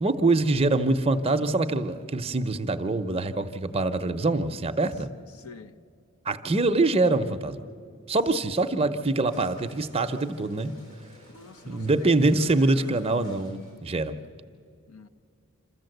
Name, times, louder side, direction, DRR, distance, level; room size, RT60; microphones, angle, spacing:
voice 1, 0.0-5.1 6.2-7.6 8.1-10.7 11.7-14.2, right 2 dB, 25° right, 0.6 m, -24 dB
voice 2, 5.3-5.8 11.3-13.1 14.9-15.1, left 4 dB, 85° left, 0.8 m, -45 dB
sound 1, 9.2-14.0, left 2 dB, 65° left, 5.9 m, -52 dB
27.0 x 14.0 x 7.9 m
head